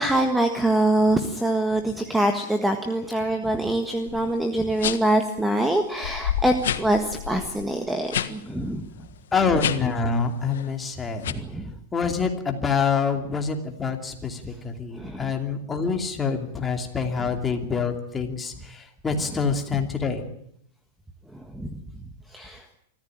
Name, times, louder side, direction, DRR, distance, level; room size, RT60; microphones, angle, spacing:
voice 1, 0.0-8.8 11.3-11.7 14.9-15.3 17.2-17.3 19.1-19.4 21.5-21.7 22.3-22.6, right 1 dB, 5° right, 6 dB, 1.5 m, -24 dB
sound 1, 4.1-4.3 4.8-5.2 5.7-5.8 6.0-8.3 8.6-8.8 9.5-10.0 10.4-10.7 11.2-11.3, left 10 dB, 85° left, 1.6 m, -29 dB
voice 2, 9.3-11.3 11.9-18.8 19.0-20.2, left 5 dB, 10° left, 4 dB, 2.8 m, -26 dB
24.5 x 14.5 x 9.0 m, 0.70 s
supercardioid pair, 155°, 0 cm